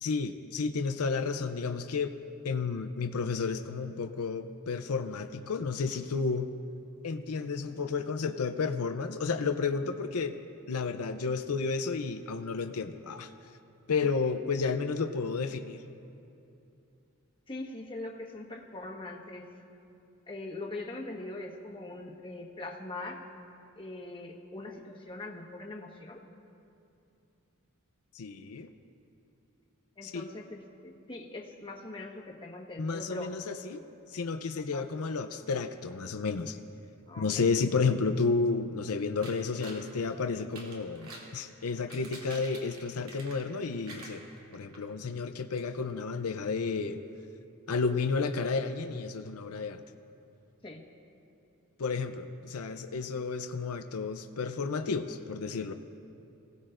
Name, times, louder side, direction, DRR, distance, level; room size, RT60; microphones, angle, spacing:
voice 1, 0.0-2.2 2.4-6.5 7.0-10.3 10.7-13.3 13.9-15.8 28.1-28.7 30.0-30.3 32.8-33.8 34.1-36.6 37.2-44.2 44.5-47.0 47.7-49.8 51.8-55.7, left 4 dB, 80° left, 7 dB, 0.6 m, -31 dB
voice 2, 17.5-19.5 20.3-23.2 23.8-26.2 30.0-33.4 34.7-34.9 37.1-37.4 50.6-50.8, left 2 dB, 25° left, 0 dB, 1.4 m, -42 dB
sound 1, 39.2-39.9 40.4-41.3 41.7-43.6 43.8-44.8 45.1-45.2 45.6-45.7, right 2 dB, 70° right, 3.1 m, -47 dB
25.5 x 18.0 x 2.6 m, 2.7 s
head